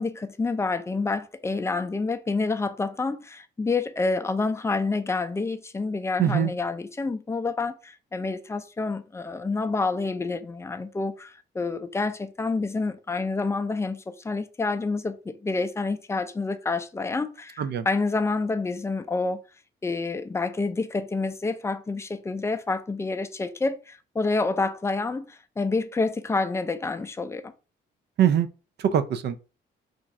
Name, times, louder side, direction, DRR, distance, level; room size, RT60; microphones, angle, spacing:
voice 1, 0.0-19.4 19.8-27.5, left 3 dB, 15° left, 0.4 m, -28 dB
voice 2, 6.2-6.5 17.6-17.9 28.2-28.5 28.8-29.4, right 9 dB, 60° right, 0.4 m, -22 dB
2.5 x 2.3 x 4.0 m
cardioid pair, 90°, 20 cm